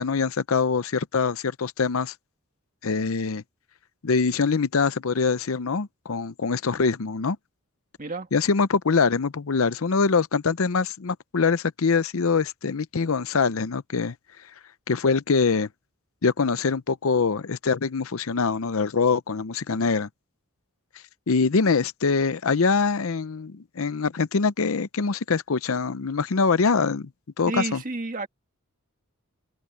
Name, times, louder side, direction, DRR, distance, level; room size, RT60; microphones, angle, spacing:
voice 1, 0.0-2.1 2.8-3.4 4.0-7.4 8.3-14.1 14.9-15.7 16.2-20.1 21.3-27.1 27.4-27.8, left 4 dB, 65° left, 0.6 m, -24 dB
voice 2, 27.5-28.3, right 3 dB, 40° right, 1.8 m, -30 dB
head